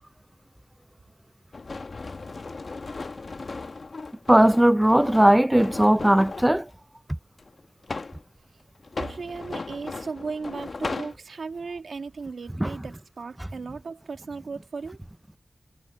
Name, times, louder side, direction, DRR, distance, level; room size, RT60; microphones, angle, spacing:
sound 1, 1.5-6.6 7.4-8.2 8.8-11.1, left 3 dB, 60° left, 1.1 m, -36 dB
voice 1, 4.3-6.7 12.6-12.7, right 1 dB, 10° right, 0.4 m, -18 dB
voice 2, 9.0-15.0, right 4 dB, 90° right, 2.2 m, -36 dB
wide cardioid pair, 75°, 0 cm